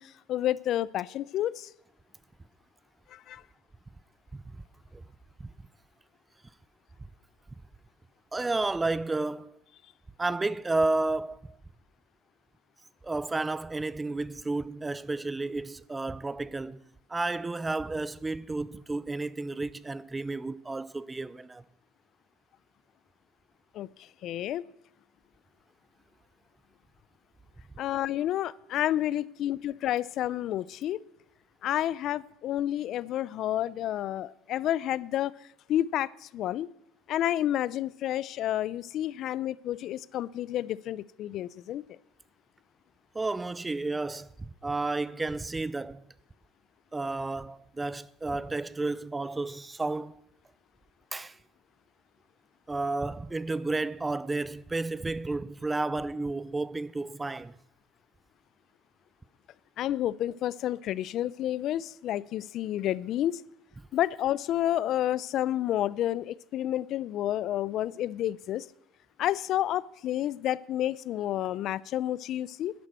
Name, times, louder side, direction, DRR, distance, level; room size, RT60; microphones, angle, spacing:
voice 1, 0.0-1.7 3.1-3.4 23.7-24.6 27.8-31.0 31.6-35.3 35.7-36.7 37.1-42.0 59.8-63.4 63.9-68.7 69.2-72.7, left 12 dB, 55° left, 0.5 m, -30 dB
voice 2, 8.3-9.6 10.2-11.6 13.0-21.6 43.1-46.0 46.9-50.2 51.1-51.4 52.7-57.6, right 3 dB, 15° right, 0.6 m, -32 dB
11.5 x 10.5 x 7.5 m
supercardioid pair, 115°, 0 cm